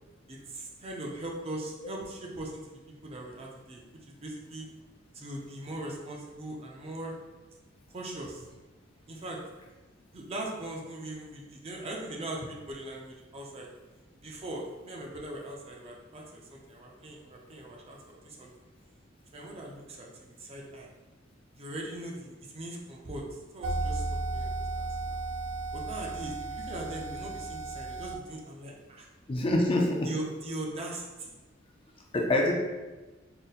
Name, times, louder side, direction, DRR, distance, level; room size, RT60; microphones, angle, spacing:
voice 1, 0.3-2.6 3.0-3.8 4.1-4.7 5.1-7.2 7.9-8.4 9.1-9.4 10.1-13.7 14.2-18.5 19.3-20.9 21.6-23.2 23.5-24.0 24.3-24.9 25.7-29.1 30.0-31.3, right 1 dB, 30° right, -1 dB, 0.5 m, -40 dB
sound 1, 23.6-28.1, right 2 dB, 80° right, 0.5 m, -34 dB
voice 2, 29.3-30.1 32.1-32.5, left 1 dB, 30° left, 0 dB, 0.4 m, -25 dB
3.8 x 2.0 x 4.0 m, 1.2 s
head